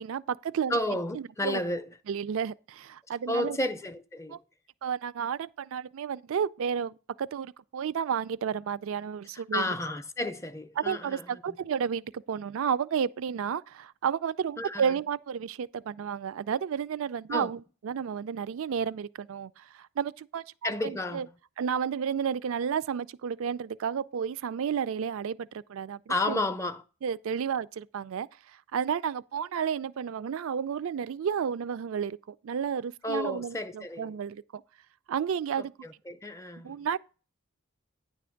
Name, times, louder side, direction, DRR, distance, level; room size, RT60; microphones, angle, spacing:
voice 1, 0.0-0.8 1.1-1.6 2.1-3.6 4.3-4.4 4.8-9.6 10.8-21.3 21.6-26.4 27.0-28.3 28.7-34.6 35.1-35.7 36.6-37.0, right 7 dB, 65° right, 0.3 m, -32 dB
voice 2, 0.7-1.9 3.3-4.4 9.3-11.6 14.6-15.0 17.3-17.5 20.6-21.3 26.1-26.8 33.0-34.2 35.6-36.8, left 1 dB, 15° left, 0.4 m, -32 dB
9.7 x 3.4 x 6.3 m
head